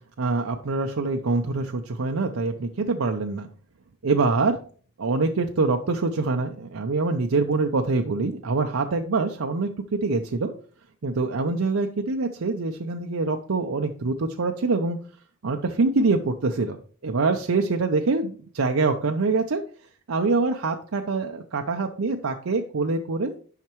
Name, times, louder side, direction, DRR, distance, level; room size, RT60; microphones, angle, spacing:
voice 1, 0.2-3.5 4.0-4.6 5.0-10.5 11.0-15.0 15.4-16.8 17.0-19.6 20.1-23.3, right 3 dB, 85° right, 4 dB, 0.6 m, -25 dB
10.5 x 5.7 x 3.0 m, 0.43 s
head